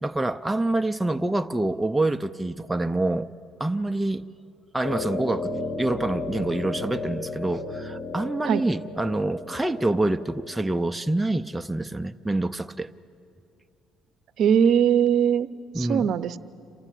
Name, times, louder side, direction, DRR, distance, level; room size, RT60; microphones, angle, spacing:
voice 1, 0.0-3.3 3.6-4.2 4.7-5.5 5.8-12.9 15.7-16.1, right 2 dB, 10° right, 7 dB, 0.5 m, -26 dB
sound 1, 4.8-10.9, left 3 dB, 60° left, 3.0 m, -34 dB
voice 2, 14.4-15.5 15.8-16.4, right 8 dB, 60° right, 15 dB, 0.7 m, -20 dB
27.0 x 15.0 x 10.0 m, 2.5 s
cardioid pair, 125°, 0 cm